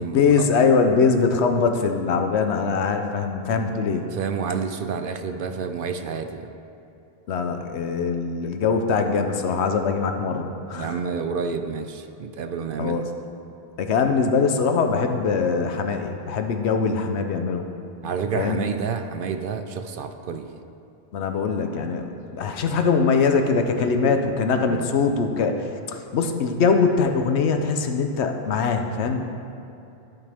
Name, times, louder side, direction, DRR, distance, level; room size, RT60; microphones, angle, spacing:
voice 1, 0.0-4.1 7.3-11.0 12.8-13.0 13.8-17.7 18.3-18.6 21.1-25.6 25.9-29.2, left 5 dB, 85° left, 6 dB, 1.0 m, -22 dB
voice 2, 4.1-6.5 10.7-13.0 18.0-20.5 23.8-24.1 24.6-24.9, right 5 dB, 60° right, 8 dB, 0.7 m, -29 dB
15.0 x 5.8 x 3.5 m, 2.7 s
omnidirectional pair, 1.1 m